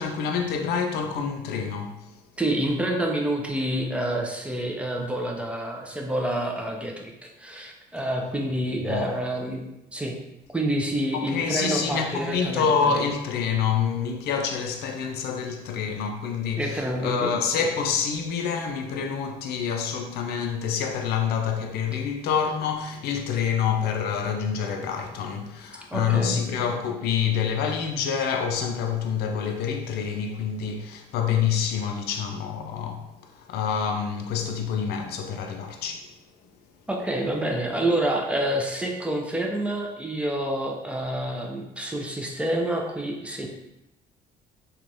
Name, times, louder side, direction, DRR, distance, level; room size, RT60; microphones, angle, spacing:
voice 1, 0.0-2.1 8.8-9.1 11.1-36.1, left 7 dB, 70° left, 0.4 m, -27 dB
voice 2, 2.4-9.6 9.9-10.3 10.5-13.0 16.6-17.4 25.9-26.4 36.9-43.5, right 1 dB, 5° right, 0.4 m, -28 dB
3.1 x 2.3 x 2.6 m
cardioid pair, 110°, 17 cm